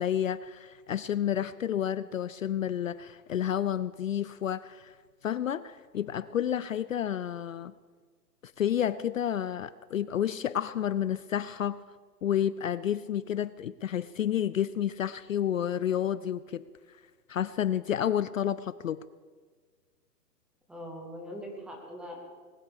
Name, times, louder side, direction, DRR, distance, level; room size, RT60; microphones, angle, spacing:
voice 1, 0.0-4.9 5.2-7.7 8.4-11.8 12.2-16.6 17.3-19.0, left 10 dB, 55° left, 16 dB, 0.5 m, -30 dB
voice 2, 20.7-22.2, equal, ahead, 1 dB, 0.8 m, -41 dB
19.5 x 10.0 x 6.9 m, 1.5 s
hypercardioid pair, 155°, 50 cm